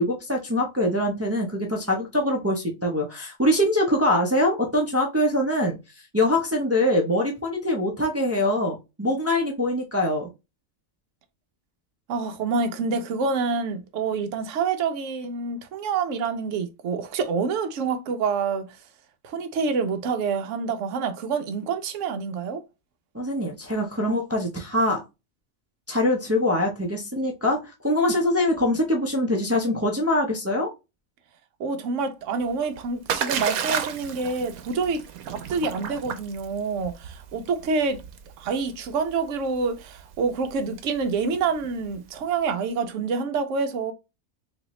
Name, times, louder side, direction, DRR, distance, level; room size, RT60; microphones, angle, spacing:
voice 1, 0.0-5.8 6.1-10.3 23.1-25.0 25.9-30.7, left 1 dB, 20° right, 0.4 m, -23 dB
voice 2, 12.1-18.8 19.2-22.6 31.6-38.0 38.4-43.9, right 5 dB, 65° right, 1.0 m, -27 dB
Splash splatter, 32.4-42.2, right 8 dB, 85° right, 1.1 m, -34 dB
4.1 x 2.7 x 3.1 m
omnidirectional pair, 1.5 m